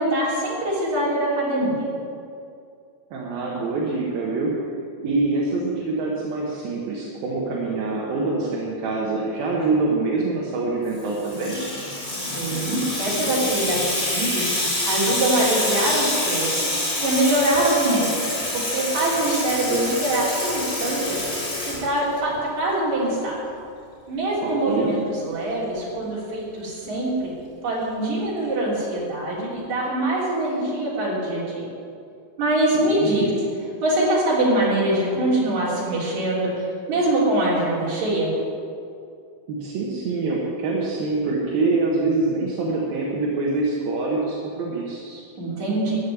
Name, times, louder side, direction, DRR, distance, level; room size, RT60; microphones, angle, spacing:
voice 1, 0.0-1.9 12.3-14.5 14.8-16.6 17.0-18.2 18.5-21.2 21.6-23.4 24.1-27.3 27.6-31.7 32.4-33.3 33.8-38.3 45.4-46.0, right 1 dB, 50° right, -5 dB, 4.6 m, -23 dB
voice 2, 3.1-4.5 5.0-11.5 24.4-24.9 32.7-33.3 39.5-45.2, right 3 dB, 70° right, -4 dB, 3.1 m, -25 dB
Water tap faucet / Sink (filling or washing), 11.0-22.4, left 1 dB, 20° left, 3.7 m, -26 dB
14.0 x 7.2 x 9.6 m, 2.5 s
omnidirectional pair, 4.5 m